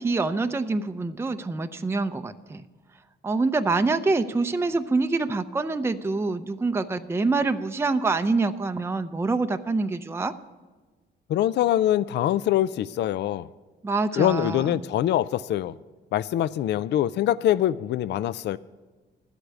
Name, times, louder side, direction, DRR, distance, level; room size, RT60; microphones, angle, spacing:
voice 1, 0.0-2.6 3.2-10.3 13.8-14.8, right 3 dB, 10° right, 9 dB, 0.5 m, -26 dB
voice 2, 11.3-13.5 14.1-15.7 16.1-18.6, left 12 dB, 60° left, 17 dB, 0.4 m, -24 dB
11.5 x 8.2 x 8.2 m, 1.3 s
cardioid pair, 90°, 20 cm